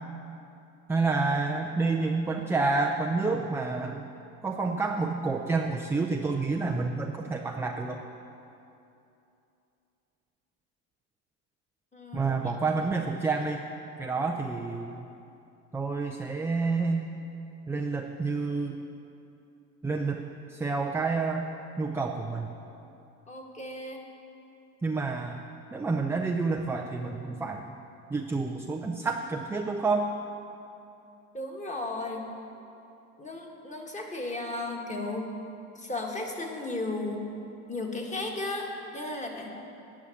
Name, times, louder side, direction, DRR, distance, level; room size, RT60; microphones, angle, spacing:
voice 1, 0.9-4.0 4.4-8.0 12.1-13.6 14.0-15.1 15.7-17.1 17.7-18.8 19.8-20.2 20.5-21.5 21.8-22.5 24.8-25.4 25.7-27.8 28.1-30.1, right 3 dB, 5° right, 2 dB, 0.4 m, -29 dB
voice 2, 11.9-12.5 23.3-24.0 31.3-32.3 33.2-35.3 35.7-37.3 37.7-39.5, left 2 dB, 15° left, 1 dB, 1.7 m, -35 dB
9.6 x 6.0 x 8.5 m, 2.8 s
hypercardioid pair, 75°, 44 cm